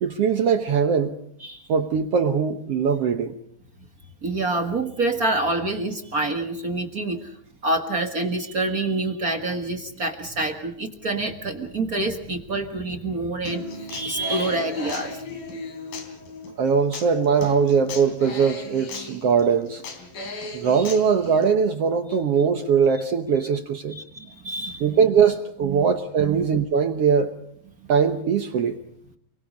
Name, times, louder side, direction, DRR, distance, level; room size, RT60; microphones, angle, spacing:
voice 1, 0.0-1.1 1.7-3.3 16.6-19.8 20.5-24.0 24.8-27.3 27.9-28.7, right 6 dB, 60° right, 7 dB, 1.6 m, -21 dB
voice 2, 4.2-7.3 7.6-13.6 13.9-15.2 23.9-24.9 25.6-25.9 26.2-26.4, right 2 dB, 40° right, 5 dB, 1.3 m, -27 dB
Human voice / Acoustic guitar, 13.5-21.4, left 3 dB, 85° left, 4.9 m, -36 dB
29.5 x 21.5 x 5.4 m, 0.69 s
omnidirectional pair, 4.0 m